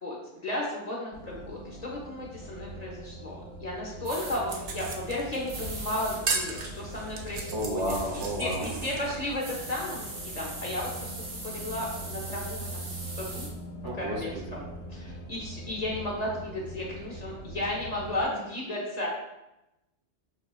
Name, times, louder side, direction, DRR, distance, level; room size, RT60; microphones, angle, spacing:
voice 1, 0.0-7.8 8.1-11.1 11.4-13.5 13.9-14.6 14.9-19.1, left 1 dB, 40° left, -3 dB, 0.7 m, -34 dB
sound 1, 1.1-18.3, right 1 dB, 75° left, 0.9 m, -42 dB
sound 2, 4.0-4.4 5.5-6.2 7.8-8.1 9.4-13.5, right 2 dB, 65° right, 1.1 m, -40 dB
sound 3, 4.5-9.8, right 4 dB, 90° right, 0.9 m, -36 dB
voice 2, 7.5-8.7 13.8-14.6, equal, 35° right, -5 dB, 0.5 m, -32 dB
6.0 x 2.1 x 2.3 m, 0.92 s
omnidirectional pair, 1.2 m